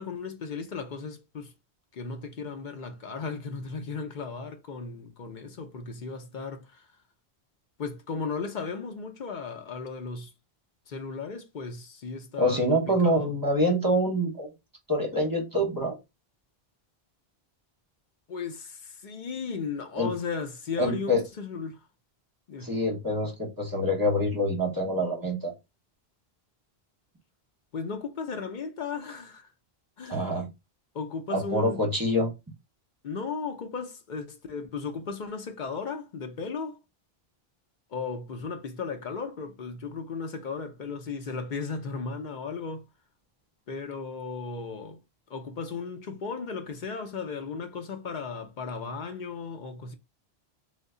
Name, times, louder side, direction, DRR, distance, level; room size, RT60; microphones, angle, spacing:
voice 1, 0.0-1.5 1.9-6.8 7.8-10.3 10.9-13.3 18.3-21.8 22.5-22.7 27.7-29.4 30.0-30.3 30.9-31.8 33.0-36.8 37.9-42.8 43.7-45.0 45.3-49.9, left 5 dB, 55° left, 0.7 m, -36 dB
voice 2, 12.4-14.5 14.9-15.9 20.0-20.1 20.8-21.2 22.6-25.5 30.1-30.5 31.3-32.3, equal, 20° right, 0.8 m, -26 dB
3.2 x 2.1 x 3.6 m
omnidirectional pair, 1.0 m